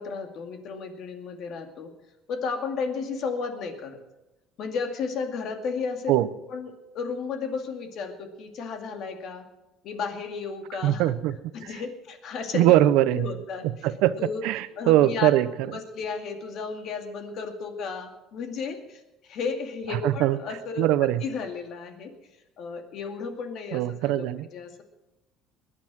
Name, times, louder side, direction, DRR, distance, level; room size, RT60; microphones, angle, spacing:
voice 1, 0.0-1.9 2.3-4.0 4.6-6.1 6.5-9.5 9.8-11.1 11.5-12.7 13.2-13.9 14.2-14.4 14.8-15.3 15.7-20.9 21.2-22.1 22.6-24.2 24.5-24.8, left 5 dB, 50° left, 5 dB, 2.3 m, -33 dB
voice 2, 10.8-11.3 11.6-11.7 12.5-13.3 13.8-14.2 14.4-15.5 19.9-20.4 20.8-21.2 23.7-24.5, right 14 dB, 75° right, 15 dB, 0.8 m, -21 dB
20.5 x 10.0 x 6.2 m, 0.97 s
cardioid pair, 150°, 0 cm